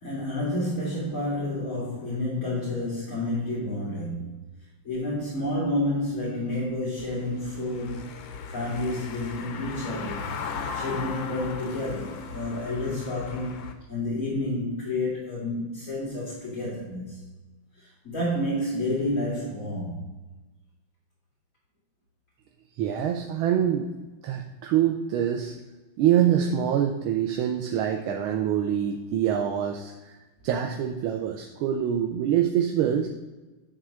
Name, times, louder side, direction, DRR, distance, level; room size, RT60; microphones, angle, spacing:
voice 1, 0.0-4.4 4.8-8.2 8.5-10.3 10.7-17.2 17.8-20.0, left 1 dB, 40° left, -9 dB, 2.7 m, -30 dB
Car passing by / Engine, 7.0-13.7, left 5 dB, 75° left, 1.6 m, -37 dB
Wind instrument woodwind instrument, 10.6-13.5, equal, 50° right, 1.5 m, -43 dB
voice 2, 22.8-23.9 24.2-25.5 26.0-29.9 30.4-33.1, right 9 dB, 85° right, 2 dB, 1.6 m, -25 dB
11.0 x 3.8 x 6.3 m, 1.1 s
omnidirectional pair, 2.2 m